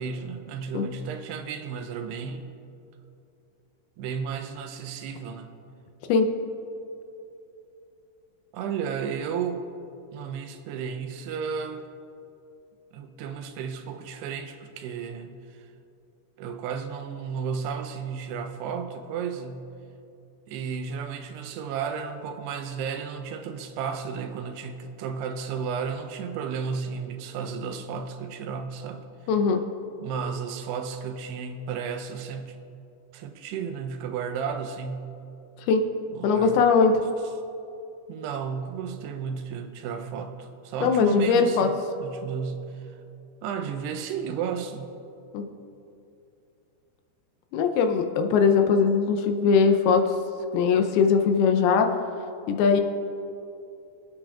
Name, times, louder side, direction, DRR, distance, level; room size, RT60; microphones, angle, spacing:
voice 1, 0.0-2.5 4.0-5.5 8.5-9.6 10.1-11.9 12.9-15.7 16.4-19.7 20.5-29.1 30.0-32.6 33.1-35.1 36.1-36.6 38.1-43.0 43.4-44.9, right 6 dB, 90° right, 7 dB, 2.8 m, -33 dB
voice 2, 29.3-29.6 35.7-35.9 36.2-37.0 40.8-41.7 45.3-45.5 47.5-50.0 50.5-51.9 52.5-52.8, left 5 dB, 80° left, 5 dB, 2.5 m, -20 dB
24.5 x 8.6 x 2.4 m, 2.7 s
omnidirectional pair, 4.7 m